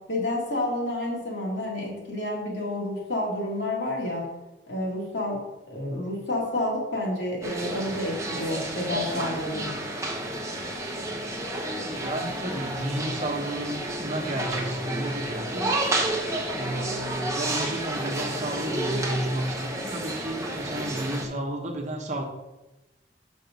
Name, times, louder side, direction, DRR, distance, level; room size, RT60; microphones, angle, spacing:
voice 1, 0.1-4.2 4.7-5.4 5.7-9.7, left 1 dB, 80° left, -3 dB, 2.4 m, -29 dB
sound 1, 7.4-21.3, right 1 dB, 15° right, 0.9 m, -31 dB
voice 2, 11.8-15.8 16.5-22.2, right 1 dB, 40° right, 2 dB, 1.1 m, -32 dB
6.5 x 5.1 x 5.2 m, 1.0 s
head